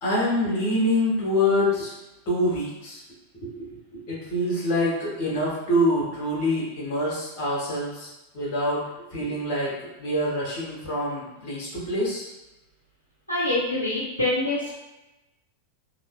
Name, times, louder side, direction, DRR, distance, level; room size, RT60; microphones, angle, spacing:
voice 1, 0.0-1.9 2.3-3.0 3.4-8.1 8.3-8.8 9.1-9.7 10.0-12.3, left 1 dB, 45° left, -5 dB, 1.2 m, -25 dB
voice 2, 13.3-14.7, left 2 dB, 90° left, -7 dB, 0.6 m, -25 dB
2.9 x 2.2 x 2.3 m, 0.96 s
figure-of-eight pair, 90°, 0 cm